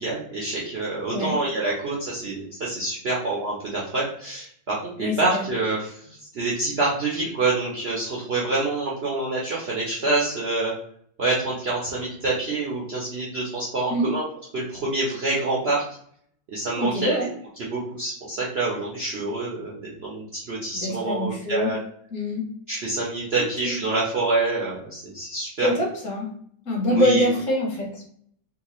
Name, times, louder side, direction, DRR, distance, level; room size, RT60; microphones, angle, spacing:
voice 1, 0.0-6.0 6.3-10.7 11.2-14.2 14.5-15.8 16.5-17.2 17.6-21.8 22.7-25.7 26.9-27.3, right 2 dB, 80° right, -5 dB, 0.5 m, -26 dB
voice 2, 5.0-5.4 13.9-14.1 16.8-17.3 20.7-21.7 22.1-22.5 23.6-23.7 25.6-26.3 26.7-28.1, equal, 50° left, -1 dB, 1.0 m, -24 dB
3.6 x 2.4 x 3.0 m, 0.64 s
omnidirectional pair, 2.1 m